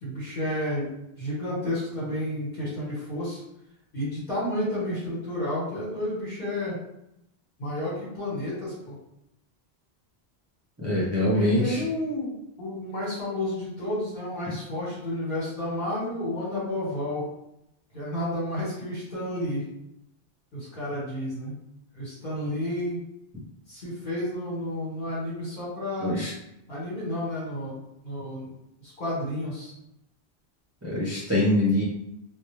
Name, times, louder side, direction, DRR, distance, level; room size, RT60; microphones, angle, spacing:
voice 1, 0.0-0.9 1.2-3.4 3.9-6.8 7.6-8.9 11.0-12.3 12.6-17.3 17.9-19.6 20.5-21.6 22.0-23.0 23.7-26.1 26.7-27.7 28.0-28.5 28.8-29.7, left 1 dB, 60° left, -7 dB, 1.2 m, -31 dB
voice 2, 10.8-11.8 26.0-26.3 30.8-31.8, left 1 dB, 20° right, -7 dB, 0.5 m, -24 dB
2.3 x 2.0 x 3.0 m, 0.82 s
omnidirectional pair, 1.1 m